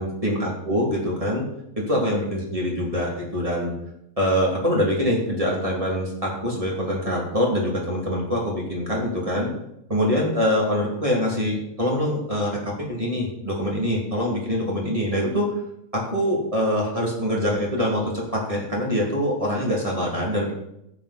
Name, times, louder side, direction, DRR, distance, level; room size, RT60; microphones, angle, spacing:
voice 1, 0.0-1.4 1.8-3.7 4.2-9.5 9.9-15.5 15.9-20.5, equal, 20° right, -3 dB, 3.1 m, -24 dB
13.0 x 9.2 x 4.3 m, 0.80 s
omnidirectional pair, 1.6 m